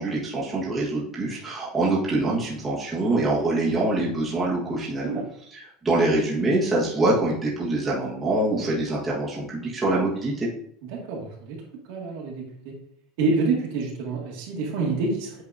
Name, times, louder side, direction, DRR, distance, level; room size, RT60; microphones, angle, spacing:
voice 1, 0.0-5.2 5.5-10.5, right 2 dB, 15° right, -7 dB, 1.5 m, -25 dB
voice 2, 10.9-11.6 11.9-12.7 13.2-15.4, right 3 dB, 70° right, -2 dB, 2.0 m, -27 dB
8.3 x 4.3 x 2.7 m, 0.68 s
supercardioid pair, 155°, 0 cm